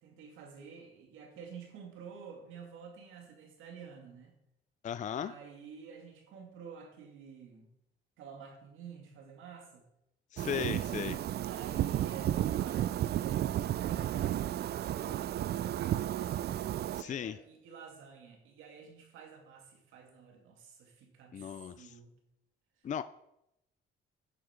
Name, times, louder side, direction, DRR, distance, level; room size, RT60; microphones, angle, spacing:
voice 1, 0.0-4.3 5.1-7.7 8.2-9.8 11.4-13.5 13.8-16.4 17.0-22.2, right 6 dB, 90° right, 2 dB, 2.4 m, -50 dB
voice 2, 4.8-5.3 10.3-11.2 16.9-17.4 21.3-21.9 22.8-23.0, left 9 dB, 40° left, 13 dB, 0.4 m, -36 dB
sound 1, 10.4-17.0, right 12 dB, 55° right, 0.4 m, -33 dB
11.0 x 7.7 x 5.2 m, 0.82 s
cardioid pair, 90°, 20 cm